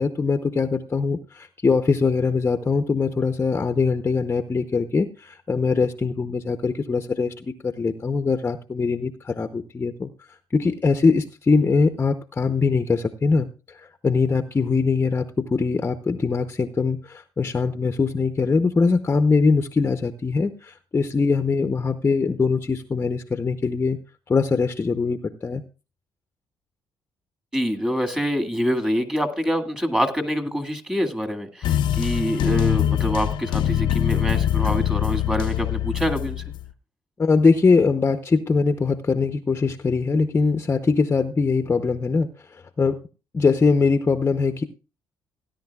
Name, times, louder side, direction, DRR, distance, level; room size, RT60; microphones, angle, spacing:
voice 1, 0.0-10.1 10.5-24.0 24.3-25.6 37.2-43.0 43.3-44.6, left 4 dB, 25° left, 9 dB, 0.7 m, -22 dB
voice 2, 27.5-36.4, equal, 10° right, 6 dB, 2.0 m, -25 dB
sound 1, 31.6-36.7, left 11 dB, 70° left, 0.6 m, -23 dB
17.5 x 10.5 x 2.3 m, 0.33 s
cardioid pair, 90°, 8 cm